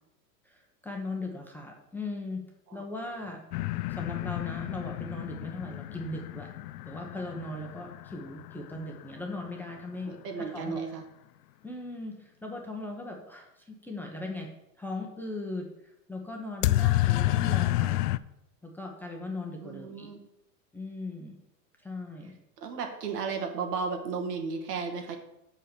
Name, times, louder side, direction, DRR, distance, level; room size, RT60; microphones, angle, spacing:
voice 1, 0.4-2.4 2.7-3.4 3.9-6.5 6.8-10.9 11.6-14.5 14.8-15.7 16.1-18.0 18.6-20.1 20.7-21.4 21.8-22.3, left 2 dB, 5° left, 0 dB, 1.0 m, -38 dB
sound 1, 3.5-9.3 16.6-18.2, left 16 dB, 70° left, 0.5 m, -30 dB
voice 2, 10.0-11.0 19.6-20.2 22.6-25.2, right 5 dB, 70° right, 4 dB, 2.1 m, -34 dB
6.0 x 5.5 x 7.0 m, 0.86 s
hypercardioid pair, 130°, 49 cm